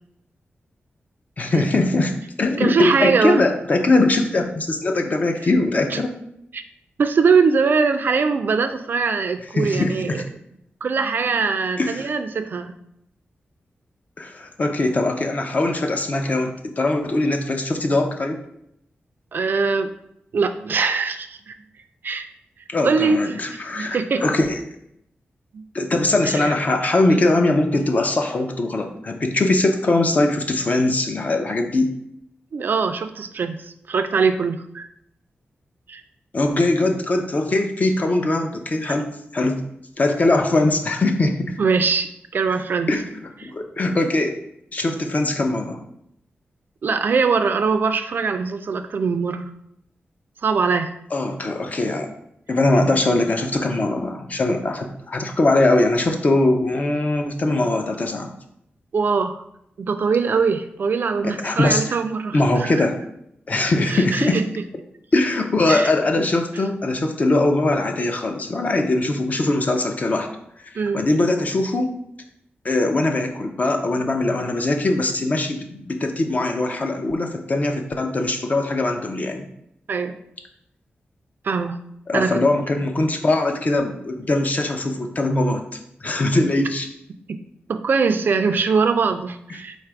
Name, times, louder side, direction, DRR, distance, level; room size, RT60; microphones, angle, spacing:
voice 1, 1.4-6.1 9.5-10.2 11.8-12.1 14.2-18.4 22.7-24.6 25.7-31.9 36.3-39.6 40.0-41.6 42.9-44.4 44.7-45.8 51.1-52.1 52.5-58.3 61.2-62.0 62.3-63.0 63.5-64.4 65.1-70.3 70.7-71.9 72.6-79.5 82.1-85.7 86.0-86.9, left 2 dB, 40° left, 4 dB, 0.5 m, -21 dB
voice 2, 2.6-3.4 5.9-6.0 6.5-6.6 7.0-10.2 10.8-12.8 19.3-19.9 20.3-21.6 22.0-22.3 22.8-24.2 25.5-25.6 26.2-26.5 32.5-34.9 35.9-36.0 41.6-42.9 46.8-49.5 50.4-50.9 58.9-59.4 59.8-62.9 63.9-64.4 65.7-65.9 70.8-71.0 79.9-80.2 81.4-81.8 82.1-82.4 87.7-89.8, right 5 dB, 55° right, 8 dB, 0.3 m, -22 dB
4.0 x 2.4 x 4.5 m, 0.75 s
wide cardioid pair, 130°, 4 cm